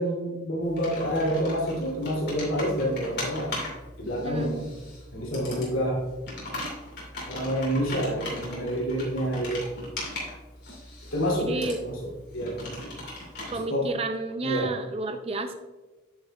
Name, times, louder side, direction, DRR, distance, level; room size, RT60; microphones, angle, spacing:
voice 1, 0.0-3.5 4.0-4.7 5.1-6.0 7.3-9.7 11.1-12.8 13.5-13.9 14.4-14.7, equal, 75° left, -4 dB, 2.6 m, -28 dB
Computer keyboard, 0.6-13.5, left 1 dB, 55° left, 2.7 m, -39 dB
voice 2, 4.2-4.7 11.4-11.8 13.5-15.5, right 2 dB, 30° right, 6 dB, 0.5 m, -31 dB
9.4 x 8.7 x 2.3 m, 1.2 s
head